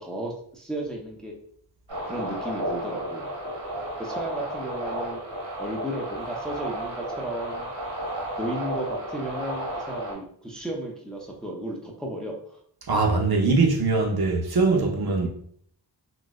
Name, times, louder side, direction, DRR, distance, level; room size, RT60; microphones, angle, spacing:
voice 1, 0.0-1.3 2.1-3.3 4.0-5.2 5.6-7.7 8.4-12.4 15.2-15.3, right 1 dB, ahead, 0.6 m, -34 dB
sound 1, 1.9-10.1, right 1 dB, 80° right, 1.3 m, -33 dB
voice 2, 12.9-15.3, right 3 dB, 55° right, 0.7 m, -22 dB
3.9 x 2.2 x 2.4 m
wide cardioid pair, 55°, 45 cm